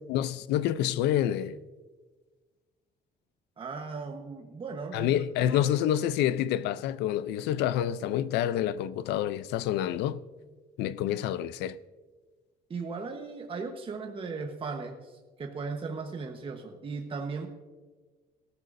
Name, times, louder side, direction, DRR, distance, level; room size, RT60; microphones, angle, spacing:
voice 1, 0.1-1.6 4.9-10.2 10.8-11.8, left 11 dB, 90° left, 0.5 m, -28 dB
voice 2, 3.6-5.7 12.7-17.5, right 4 dB, 30° right, 1.2 m, -37 dB
19.0 x 14.5 x 2.6 m
cardioid pair, 110°, 17 cm